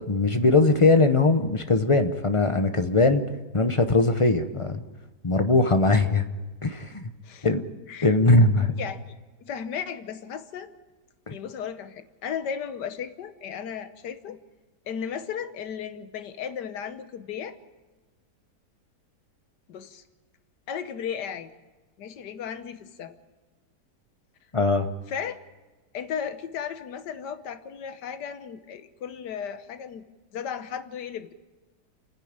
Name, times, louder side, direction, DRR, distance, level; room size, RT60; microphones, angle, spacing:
voice 1, 0.1-3.2 3.5-4.8 5.2-6.2 6.6-7.1 7.4-7.6 8.0-8.7 11.3-11.4 24.5-24.9, left 3 dB, 30° left, 8 dB, 0.6 m, -20 dB
voice 2, 8.7-9.0 9.4-10.7 11.3-14.4 14.9-17.6 19.7-20.0 20.7-21.5 22.0-23.2 25.1-25.4 25.9-30.0 30.3-31.3, left 7 dB, 85° left, 11 dB, 1.6 m, -35 dB
29.0 x 10.0 x 8.8 m, 1.2 s
omnidirectional pair, 1.8 m